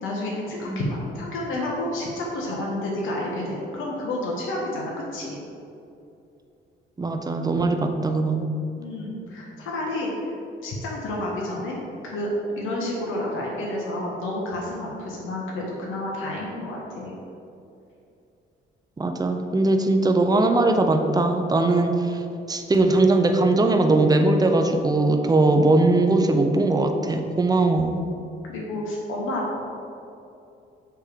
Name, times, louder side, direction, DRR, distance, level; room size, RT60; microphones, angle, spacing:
voice 1, 0.0-5.4 8.8-10.3 10.6-11.8 12.0-12.3 12.6-17.1 28.4-29.6, left 1 dB, 80° left, -3 dB, 1.2 m, -30 dB
voice 2, 7.0-8.5 19.0-22.2 22.5-28.0, right 2 dB, 20° right, 5 dB, 0.6 m, -20 dB
7.5 x 3.3 x 5.0 m, 2.6 s
cardioid pair, 90°, 20 cm